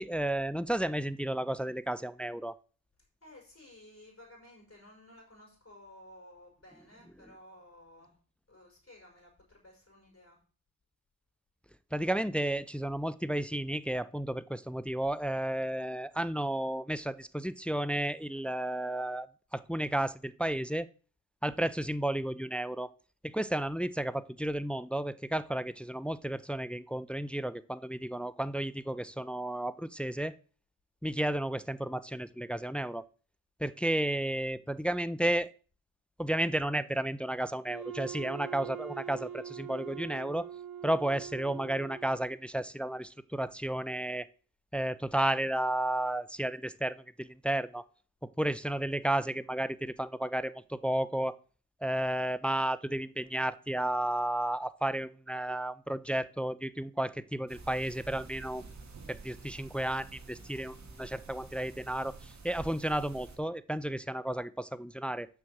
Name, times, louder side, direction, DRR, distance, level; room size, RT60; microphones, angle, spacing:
voice 1, 0.0-2.6 11.9-19.3 19.5-20.9 21.4-22.9 23.2-30.3 31.0-33.0 33.6-35.5 36.2-40.5 40.8-44.3 44.7-47.8 48.4-51.4 51.8-58.7 59.1-65.3, right 1 dB, 5° left, 14 dB, 0.4 m, -32 dB
voice 2, 3.0-8.2 8.5-10.4, left 1 dB, 40° left, -1 dB, 5.4 m, -55 dB
Wind instrument woodwind instrument, 37.6-42.4, right 9 dB, 85° right, 1.0 m, -43 dB
sound 1, 57.5-63.4, right 3 dB, 50° right, 2.0 m, -49 dB
6.3 x 6.2 x 7.3 m, 0.39 s
cardioid pair, 70°, 35 cm